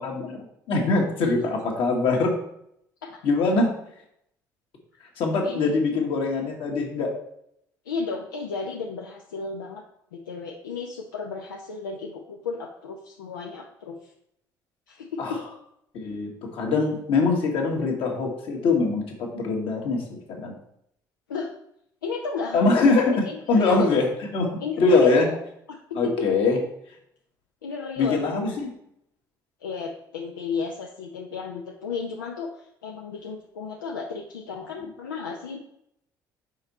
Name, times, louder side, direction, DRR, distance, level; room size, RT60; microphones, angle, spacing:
voice 1, 0.0-2.4 3.2-3.7 5.2-7.1 15.2-15.4 15.9-20.6 22.5-24.1 24.3-24.5 24.8-25.3 25.9-26.6 28.0-28.7, left 3 dB, 60° left, 0 dB, 1.7 m, -23 dB
voice 2, 7.8-9.8 10.1-14.1 14.9-15.4 21.3-21.5 22.0-22.9 23.2-23.9 24.6-25.3 25.7-26.3 27.6-28.5 29.6-35.6, left 5 dB, 85° left, -1 dB, 0.6 m, -33 dB
5.7 x 4.5 x 4.1 m, 0.73 s
hypercardioid pair, 55°, 10 cm